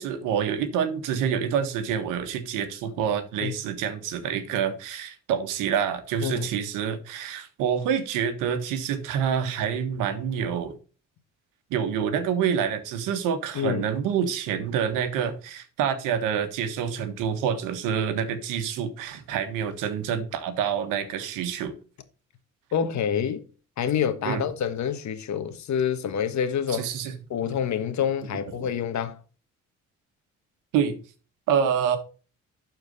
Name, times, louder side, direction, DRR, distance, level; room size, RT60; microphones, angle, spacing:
voice 1, 0.0-10.7 11.7-21.8 24.2-24.4 26.7-27.1 28.5-28.7 30.7-31.0 31.5-32.0, right 8 dB, 90° right, 1.4 m, -27 dB
voice 2, 22.7-23.4 23.8-26.9 27.3-29.2, left 8 dB, 65° left, 1.4 m, -27 dB
11.5 x 4.5 x 4.1 m
supercardioid pair, 65°, 31 cm